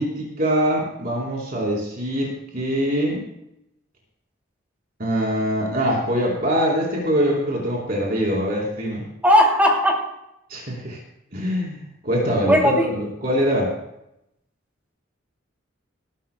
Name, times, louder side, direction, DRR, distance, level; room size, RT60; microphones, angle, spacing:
voice 1, 0.0-3.3 5.0-9.0 10.5-11.0 11.3-13.7, equal, 50° right, -3 dB, 3.7 m, -23 dB
voice 2, 9.2-10.0 12.5-12.8, equal, 10° right, -1 dB, 2.6 m, -16 dB
20.0 x 13.0 x 2.2 m, 0.81 s
head